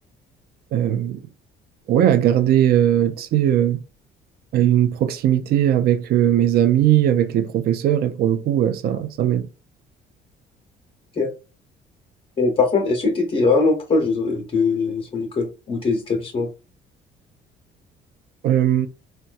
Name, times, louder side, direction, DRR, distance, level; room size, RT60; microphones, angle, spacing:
voice 1, 0.7-1.2 1.9-3.8 4.5-9.5 18.4-18.9, right 11 dB, 65° right, 0.5 m, -19 dB
voice 2, 12.4-16.5, left 4 dB, 35° left, 0.8 m, -21 dB
4.1 x 2.2 x 2.4 m
cardioid pair, 110°, 17 cm